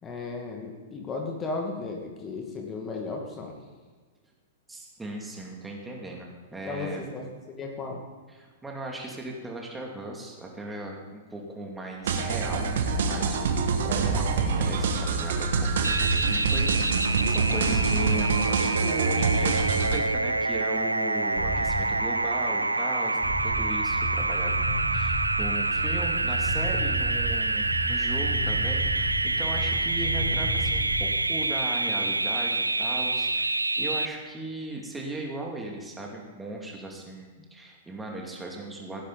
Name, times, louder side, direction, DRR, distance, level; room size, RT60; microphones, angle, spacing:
voice 1, 0.0-3.6 6.6-8.0, left 3 dB, 20° left, 1 dB, 2.0 m, -35 dB
voice 2, 4.7-7.0 8.4-39.0, right 2 dB, 10° right, -1 dB, 2.4 m, -38 dB
sound 1, 12.0-20.0, right 5 dB, 60° right, 1.5 m, -26 dB
sound 2, 12.4-12.6 14.0-14.4 15.8-16.3 17.7-18.2 19.5-20.0 21.4-21.9 23.2-31.1, right 1 dB, 40° right, 5.0 m, -32 dB
sound 3, 15.8-34.1, right 2 dB, 90° right, 0.4 m, -27 dB
17.5 x 10.0 x 4.0 m, 1.4 s
figure-of-eight pair, 105°, 0 cm